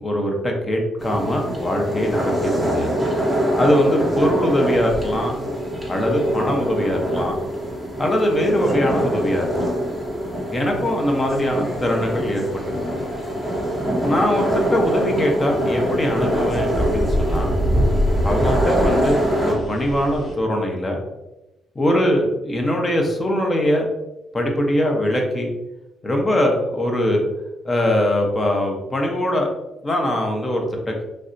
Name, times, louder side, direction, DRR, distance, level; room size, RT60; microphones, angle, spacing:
voice 1, 0.0-2.9 3.6-5.3 5.9-7.3 8.0-9.7 10.5-12.6 14.0-17.5 18.2-21.0 21.8-23.9 24.3-25.5 26.0-27.3 27.6-29.5 29.8-31.0, equal, 25° left, 1 dB, 0.8 m, -21 dB
sound 1, 1.0-19.5, equal, ahead, 1.0 m, -24 dB
sound 2, 4.0-20.3, equal, 60° left, 0.9 m, -29 dB
3.3 x 2.6 x 2.6 m, 0.98 s
cardioid pair, 90°, 0 cm